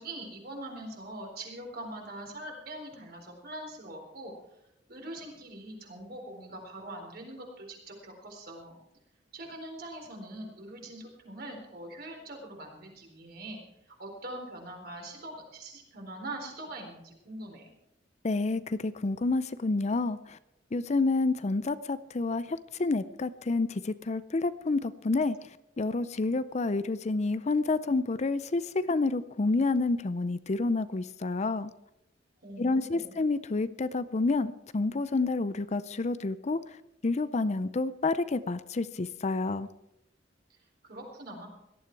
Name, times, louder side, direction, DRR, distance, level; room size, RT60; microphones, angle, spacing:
voice 1, 0.0-4.3 4.9-8.8 9.3-13.6 13.9-17.7 32.4-33.2 40.8-41.5, right 1 dB, 55° right, 1 dB, 4.0 m, -43 dB
voice 2, 18.2-20.2 20.7-25.4 25.8-31.7 32.6-36.6 37.0-39.7, left 3 dB, 35° left, 14 dB, 0.5 m, -29 dB
17.5 x 12.5 x 4.6 m, 0.87 s
head